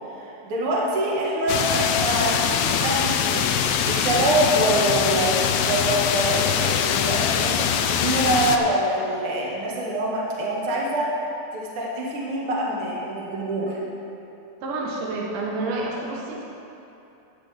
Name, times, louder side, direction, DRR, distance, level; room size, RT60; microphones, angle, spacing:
voice 1, 0.1-3.5 3.8-7.5 7.8-11.1 11.5-13.8, right 1 dB, 45° right, -5 dB, 2.0 m, -25 dB
sound 1, 1.5-8.6, left 8 dB, 80° left, 2.3 m, -23 dB
voice 2, 14.6-16.4, right 2 dB, 65° right, -3 dB, 2.4 m, -29 dB
14.5 x 9.5 x 3.5 m, 2.9 s
omnidirectional pair, 4.4 m